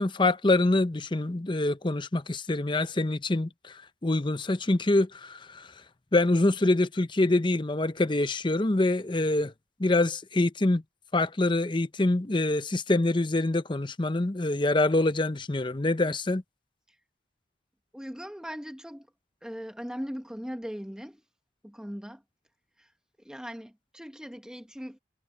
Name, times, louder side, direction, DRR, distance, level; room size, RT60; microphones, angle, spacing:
voice 1, 0.0-5.7 6.1-9.5 9.8-10.8 11.1-16.4, left 2 dB, 25° left, 0.7 m, -25 dB
voice 2, 17.9-19.1 19.4-21.2 21.6-22.2 22.8-22.9 23.2-25.0, equal, 5° right, 1.1 m, -39 dB
head